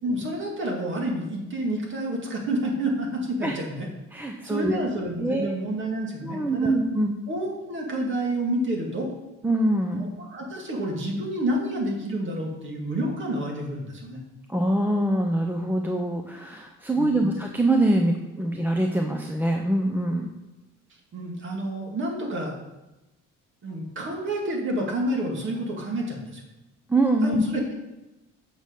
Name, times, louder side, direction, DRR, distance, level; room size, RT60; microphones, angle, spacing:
voice 1, 0.0-3.9 4.3-6.7 7.3-9.1 10.0-14.2 17.0-17.4 21.1-22.5 23.6-26.4 27.2-27.7, right 1 dB, 40° right, 0 dB, 2.3 m, -29 dB
voice 2, 4.1-4.8 5.2-5.6 6.2-7.3 9.4-10.0 14.5-20.3 26.9-27.4, right 1 dB, 5° right, 2 dB, 0.6 m, -24 dB
8.8 x 6.3 x 5.3 m, 1.0 s
cardioid pair, 135°, 30 cm